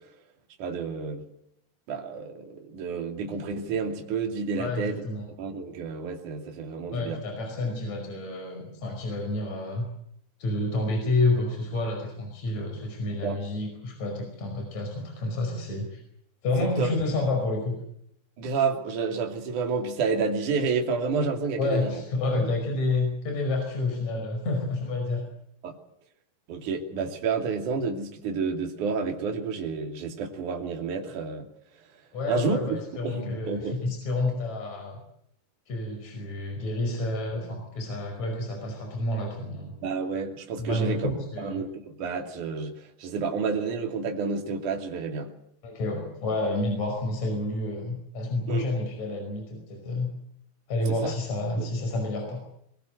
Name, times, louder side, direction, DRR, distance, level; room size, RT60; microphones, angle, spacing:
voice 1, 0.6-1.2 1.9-5.0 5.4-7.2 13.2-13.4 16.6-16.9 18.4-22.0 22.3-22.5 25.6-25.8 26.5-31.5 32.3-33.7 39.8-41.1 41.4-45.3 48.5-48.6 51.0-51.1 51.6-51.7, right 5 dB, 50° right, 3 dB, 4.0 m, -30 dB
voice 2, 4.6-5.3 6.9-9.9 10.4-16.0 16.4-17.8 21.6-25.2 32.1-35.0 35.7-39.7 40.6-41.6 45.6-50.1 50.7-52.4, left 2 dB, 40° left, 2 dB, 6.3 m, -29 dB
22.5 x 22.0 x 8.0 m, 0.72 s
omnidirectional pair, 4.8 m